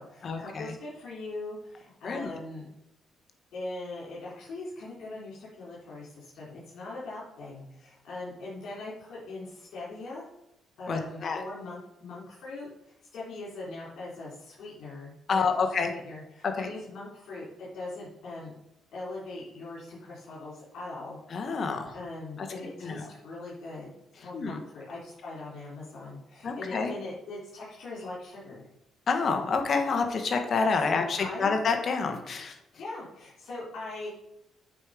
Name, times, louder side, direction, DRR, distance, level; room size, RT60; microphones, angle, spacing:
voice 1, 0.0-2.7 3.5-10.2 10.8-18.5 18.9-21.2 21.5-23.9 24.2-28.7 30.7-31.5 32.8-34.1, left 2 dB, 70° left, -7 dB, 3.4 m, -41 dB
voice 2, 10.9-11.4 15.3-15.9 16.6-16.7 21.3-21.9 22.8-23.1 24.3-24.6 26.4-26.9 29.1-32.5, left 4 dB, 50° left, 5 dB, 1.3 m, -28 dB
8.5 x 4.9 x 5.1 m, 0.83 s
cardioid pair, 90°, 0 cm